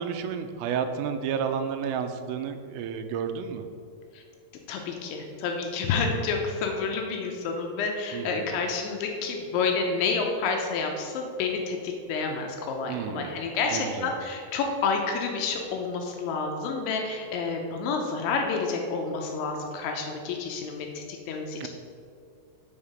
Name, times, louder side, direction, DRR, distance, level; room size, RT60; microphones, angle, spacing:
voice 1, 0.0-3.6 8.1-8.6 12.9-13.4 13.7-14.1 21.6-21.7, right 7 dB, 90° right, 8 dB, 3.3 m, -31 dB
voice 2, 4.7-21.7, left 4 dB, 80° left, 2 dB, 2.9 m, -29 dB
7.1 x 5.7 x 6.6 m, 2.3 s
omnidirectional pair, 5.7 m